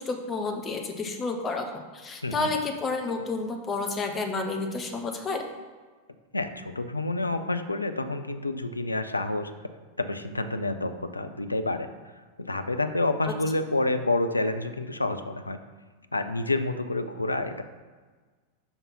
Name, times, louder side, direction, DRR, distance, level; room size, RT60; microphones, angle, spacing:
voice 1, 0.0-5.5 13.2-13.3, left 3 dB, 20° left, 4 dB, 0.8 m, -30 dB
voice 2, 6.3-9.5 10.0-11.9 12.5-15.6 16.1-17.6, left 2 dB, 80° left, 9 dB, 0.4 m, -28 dB
5.7 x 5.3 x 4.2 m, 1.4 s
figure-of-eight pair, 90°, 0 cm